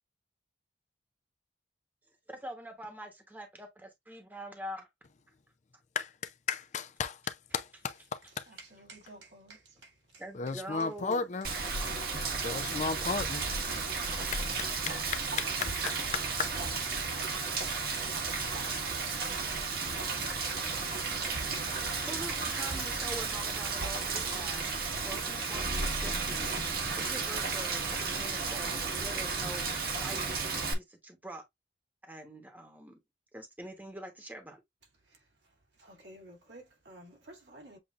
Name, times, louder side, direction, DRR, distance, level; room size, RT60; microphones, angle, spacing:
voice 1, 2.3-4.9 10.2-11.3 22.0-31.4 32.1-33.0 33.3-34.6, right 1 dB, 10° right, 1.1 m, -45 dB
voice 2, 6.0-8.5 10.3-11.5 12.4-13.5 14.3-16.6, left 5 dB, 40° left, 0.4 m, -35 dB
voice 3, 8.6-9.6 14.8-15.0 35.8-37.8, right 2 dB, 75° right, 2.3 m, -52 dB
Rain, 11.4-30.7, right 4 dB, 55° right, 1.3 m, -33 dB
7.5 x 2.7 x 2.4 m
head